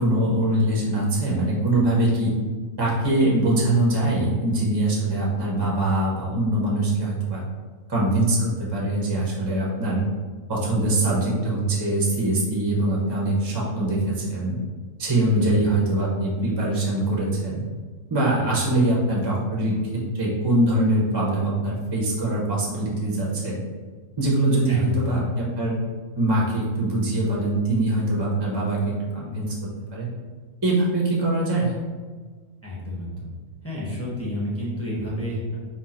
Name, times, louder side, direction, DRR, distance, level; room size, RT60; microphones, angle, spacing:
voice 1, 0.0-2.3 2.8-7.4 7.9-10.0 10.5-14.6 15.0-17.6 18.1-23.6 24.2-25.8 26.2-29.5 29.9-30.1 30.6-31.8, right 1 dB, 25° right, -4 dB, 0.6 m, -23 dB
voice 2, 15.2-15.6 24.7-25.1 32.6-33.3 33.6-35.6, left 1 dB, 10° left, -7 dB, 0.9 m, -30 dB
4.4 x 2.4 x 4.3 m, 1.4 s
omnidirectional pair, 1.5 m